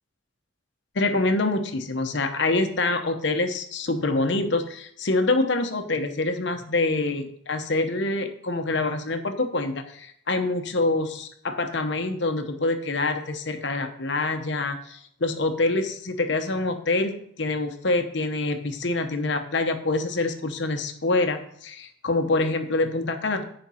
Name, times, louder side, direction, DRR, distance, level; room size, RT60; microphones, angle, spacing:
voice 1, 0.9-23.4, left 2 dB, 60° left, 6 dB, 0.9 m, -26 dB
10.0 x 5.2 x 5.6 m, 0.66 s
head